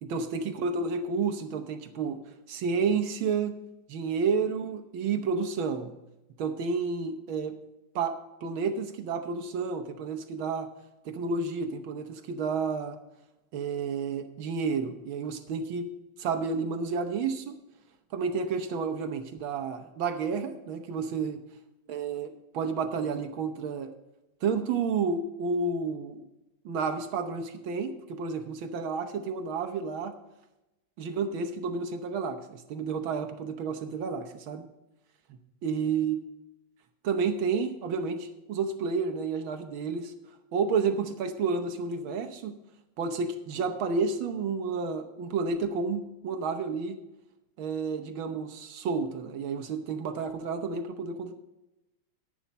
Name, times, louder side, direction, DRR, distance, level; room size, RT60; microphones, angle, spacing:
voice 1, 0.0-2.2 2.5-3.6 3.9-5.9 6.4-7.6 7.9-8.1 8.4-10.7 11.0-13.0 13.5-15.9 16.2-17.6 18.1-21.4 21.9-23.9 24.4-26.2 26.6-30.2 31.0-34.6 35.3-36.3 37.0-40.1 40.5-42.6 43.0-47.0 47.6-51.3, right 5 dB, 70° right, 7 dB, 1.6 m, -30 dB
11.0 x 10.5 x 4.1 m, 0.95 s
omnidirectional pair, 2.4 m